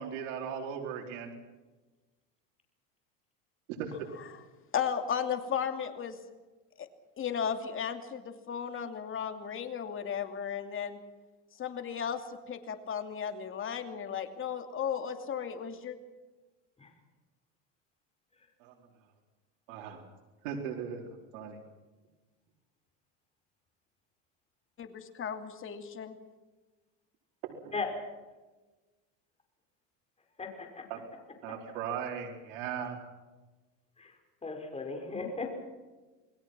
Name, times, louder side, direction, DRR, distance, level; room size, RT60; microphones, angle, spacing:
voice 1, 0.0-1.3 3.7-4.0 18.6-18.7 19.7-20.0 20.4-21.1 21.3-21.6 27.4-27.7 30.9-31.0 31.4-33.0, right 7 dB, 85° right, 0 dB, 4.5 m, -38 dB
voice 2, 4.7-6.2 6.8-6.9 7.2-11.0 11.5-16.0 24.8-26.2, left 7 dB, 35° left, 6 dB, 2.8 m, -35 dB
voice 3, 30.4-30.8 34.0-35.6, left 4 dB, 15° left, 3 dB, 5.6 m, -37 dB
28.5 x 21.0 x 6.1 m, 1.2 s
supercardioid pair, 125°, 37 cm